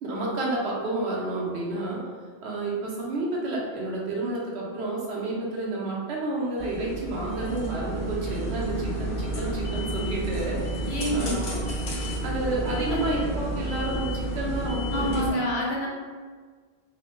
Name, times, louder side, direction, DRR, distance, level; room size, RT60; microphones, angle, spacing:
voice 1, 0.0-2.0 2.4-11.6 12.2-15.4, right 2 dB, 80° right, -4 dB, 0.9 m, -30 dB
sound 1, 6.6-15.3, right 1 dB, 90° left, 0.9 m, -30 dB
voice 2, 10.9-11.5 12.9-13.3 14.9-15.9, equal, 55° left, -4 dB, 0.6 m, -28 dB
3.1 x 2.0 x 2.9 m, 1.5 s
omnidirectional pair, 1.1 m